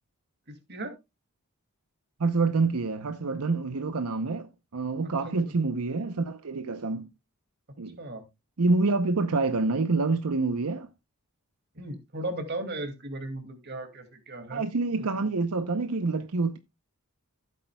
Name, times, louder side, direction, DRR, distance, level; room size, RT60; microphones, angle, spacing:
voice 1, 2.2-7.1 7.8-8.0 8.6-10.9 14.5-16.6, right 3 dB, 80° right, 0.7 m, -27 dB
voice 2, 11.7-14.6 15.0-15.3, right 1 dB, 50° right, 2.4 m, -36 dB
14.5 x 8.4 x 2.3 m
head